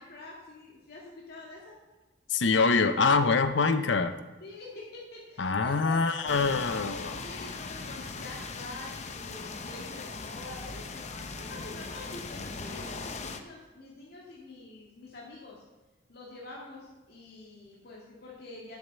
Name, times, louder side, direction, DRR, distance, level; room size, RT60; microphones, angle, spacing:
voice 1, 0.0-1.8 4.4-6.2 7.1-15.6 16.1-18.8, left 2 dB, 55° left, -4 dB, 2.0 m, -46 dB
voice 2, 2.3-4.1 5.4-7.2, left 4 dB, 90° left, 10 dB, 0.7 m, -25 dB
sound 1, 6.3-13.4, left 4 dB, 40° left, 0.8 m, -39 dB
7.4 x 7.1 x 8.2 m, 1.1 s
head